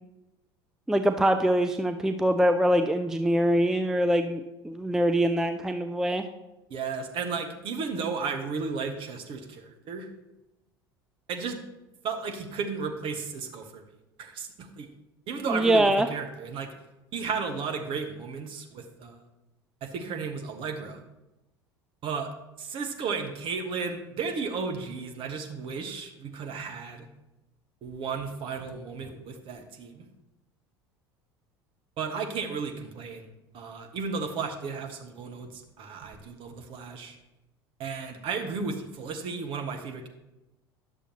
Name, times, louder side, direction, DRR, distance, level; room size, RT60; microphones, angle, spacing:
voice 1, 0.9-6.3 15.5-16.1, right 1 dB, 5° right, 7 dB, 0.4 m, -24 dB
voice 2, 6.7-10.1 11.3-11.6 12.0-13.8 14.2-14.9 15.3-16.7 17.1-19.2 19.8-21.0 22.0-22.3 22.6-27.1 27.8-30.0 32.0-33.3 33.5-37.2 37.8-40.1, right 5 dB, 40° right, 5 dB, 1.1 m, -34 dB
11.0 x 6.8 x 3.0 m, 0.97 s
figure-of-eight pair, 70°, 13 cm